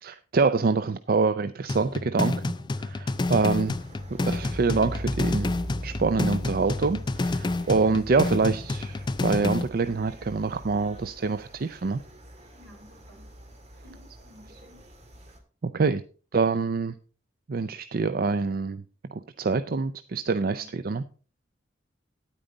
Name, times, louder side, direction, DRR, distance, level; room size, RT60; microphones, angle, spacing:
voice 1, 0.0-3.8 4.1-5.5 5.8-12.0 15.6-16.0 16.3-16.9 17.5-18.8 19.4-21.0, right 4 dB, 55° right, 12 dB, 0.5 m, -26 dB
sound 1, 1.7-9.7, left 2 dB, 25° left, 0.4 m, -29 dB
sound 2, 3.1-15.4, equal, 40° right, 1.9 m, -41 dB
voice 2, 7.7-8.0 12.5-13.3 13.8-14.8 20.5-20.7, equal, 80° right, 2 dB, 4.5 m, -52 dB
10.0 x 8.9 x 3.9 m, 0.38 s
head